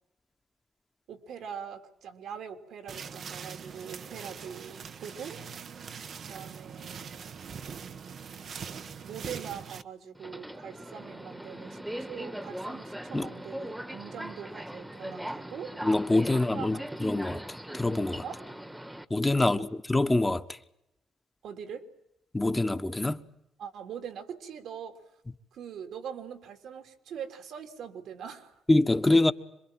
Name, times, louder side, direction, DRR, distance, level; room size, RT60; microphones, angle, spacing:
voice 1, 1.1-5.4 6.3-7.2 9.0-15.7 16.2-16.8 18.2-18.4 19.3-19.5 21.4-21.9 23.6-25.0 25.5-28.6, right 7 dB, 75° right, 3.3 m, -42 dB
sound 1, 2.9-9.8, right 6 dB, 60° right, 1.2 m, -42 dB
Subway metro underground, 10.1-19.0, right 1 dB, 10° right, 1.5 m, -40 dB
voice 2, 15.8-18.2 19.1-20.6 22.3-23.2 28.7-29.3, left 2 dB, 15° left, 1.3 m, -25 dB
26.5 x 22.5 x 7.6 m
supercardioid pair, 65°, 0 cm